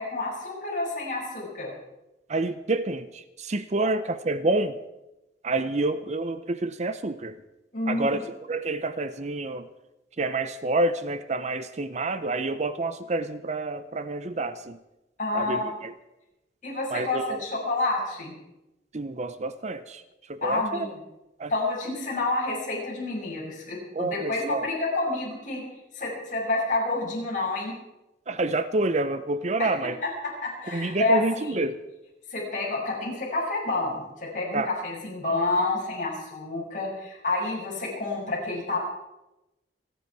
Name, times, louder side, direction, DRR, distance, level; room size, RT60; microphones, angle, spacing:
voice 1, 0.0-1.7 3.8-3.9 7.7-8.2 15.2-15.7 16.6-18.3 20.4-21.0 21.5-25.6 25.9-27.8 29.6-29.7 30.0-30.1 30.4-31.6 32.3-38.8, left 2 dB, 45° left, -3 dB, 6.6 m, -29 dB
voice 2, 2.3-4.8 5.4-7.3 7.9-8.2 8.5-9.7 10.2-14.8 15.3-15.9 16.9-17.4 18.9-20.0 20.3-20.9 21.4-21.5 23.9-24.6 28.3-30.0 30.7-31.8 34.5-34.7, right 2 dB, 40° right, 12 dB, 0.7 m, -28 dB
27.5 x 10.0 x 4.7 m, 0.96 s
head